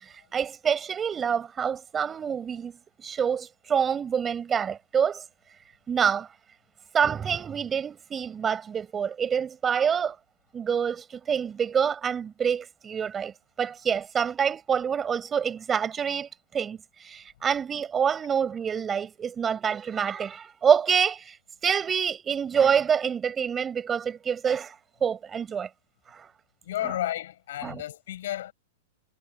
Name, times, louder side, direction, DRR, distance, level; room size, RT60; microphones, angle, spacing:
voice 1, 0.3-2.7 3.0-5.2 5.9-6.3 6.9-10.2 10.5-16.8 17.0-21.4 21.6-24.7 25.0-25.7 26.1-26.3 26.8-26.9 27.6-27.8, right 7 dB, 20° right, 4.8 m, -26 dB
voice 2, 26.6-28.5, left 13 dB, 70° left, 7.7 m, -32 dB
hypercardioid pair, 125°, 0 cm